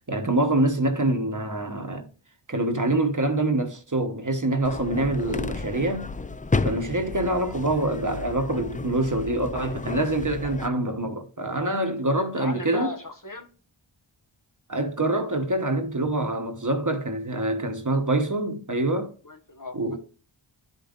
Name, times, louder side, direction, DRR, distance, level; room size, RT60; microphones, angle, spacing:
voice 1, 0.1-2.1 2.5-6.1 6.6-12.9 14.7-19.1 19.7-20.0, right 2 dB, 40° right, 1.0 m, -25 dB
sound 1, 4.6-10.7, left 3 dB, 20° left, 0.3 m, -32 dB
voice 2, 12.4-13.5 19.2-20.0, left 3 dB, 40° left, 1.3 m, -37 dB
11.5 x 5.2 x 2.4 m
wide cardioid pair, 40°, 49 cm